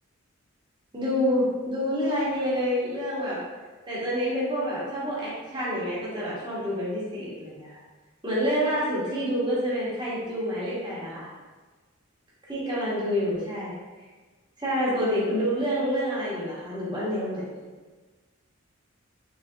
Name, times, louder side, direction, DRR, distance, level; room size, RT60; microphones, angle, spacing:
voice 1, 0.9-3.4 3.9-7.8 8.2-11.3 12.5-13.7 14.6-17.6, equal, 20° right, -8 dB, 1.0 m, -28 dB
3.6 x 3.2 x 2.6 m, 1.3 s
head